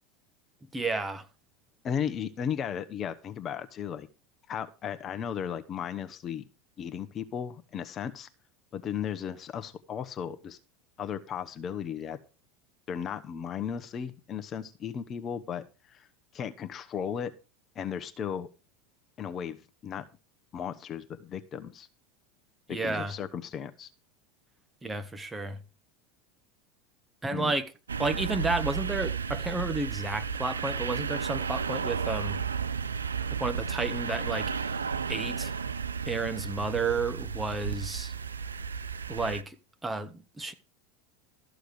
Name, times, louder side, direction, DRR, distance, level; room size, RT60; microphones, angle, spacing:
voice 1, 0.7-1.3 22.7-23.1 24.8-25.6 27.2-27.7 28.0-32.4 33.3-34.8 35.1-35.5 36.1-38.1 39.1-39.6 39.8-40.5, right 3 dB, 15° right, 1.2 m, -32 dB
voice 2, 1.8-4.1 4.5-6.4 6.8-8.3 8.7-10.6 11.0-12.2 12.9-16.1 16.3-17.3 17.7-18.5 19.2-20.0 20.5-21.9 22.7-23.9 27.3-27.5, left 8 dB, 35° left, 1.0 m, -35 dB
sound 1, 27.9-39.4, right 6 dB, 85° right, 0.4 m, -33 dB
13.5 x 6.5 x 4.9 m
hypercardioid pair, 85°, 0 cm